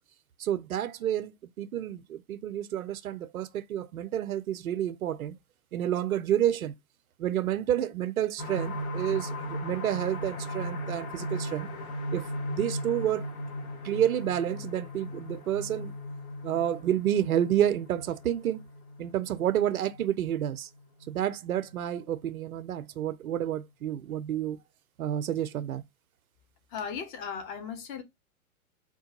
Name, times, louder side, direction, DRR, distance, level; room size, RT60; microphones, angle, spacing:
voice 1, 0.4-5.4 5.7-6.7 7.2-11.7 12.1-12.2 12.5-13.3 13.8-15.9 16.4-18.6 19.0-20.7 21.1-24.6 25.0-25.8, right 11 dB, 75° right, 0.5 m, -29 dB
sound 1, 8.4-21.9 22.3-22.4 22.8-22.9, equal, 75° left, 1.0 m, -37 dB
voice 2, 26.7-28.0, left 7 dB, 35° left, 0.8 m, -36 dB
4.4 x 2.2 x 2.9 m
figure-of-eight pair, 110°, 43 cm